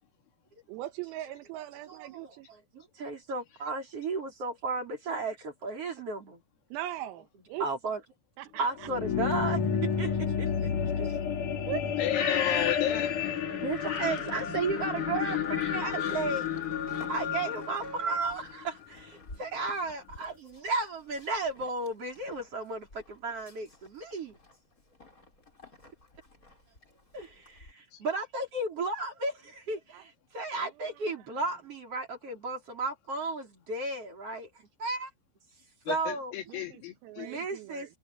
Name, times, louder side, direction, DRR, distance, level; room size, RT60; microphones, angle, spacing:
voice 1, 0.7-2.5 6.7-7.7 8.4-8.9 11.0-11.2 11.7-11.9 14.1-14.2 29.9-30.0 36.5-38.0, right 14 dB, 85° right, 4.2 m, -40 dB
voice 2, 1.9-2.3 2.7-6.4 7.6-8.0 8.6-10.9 11.2-11.4 13.5-16.5 16.9-24.4 27.1-34.5 34.8-35.1 35.9-36.3 37.2-38.0, right 3 dB, 30° right, 5.1 m, -34 dB
sound 1, 8.8-18.6, left 8 dB, 45° left, 3.5 m, -31 dB
voice 3, 12.0-13.2 27.9-28.0 35.9-37.3, left 11 dB, 90° left, 5.7 m, -33 dB
sound 2, 13.1-18.2, right 1 dB, 5° right, 3.5 m, -44 dB
Livestock farm animals working animals, 15.3-27.7, left 2 dB, 15° left, 5.3 m, -55 dB
omnidirectional pair, 5.9 m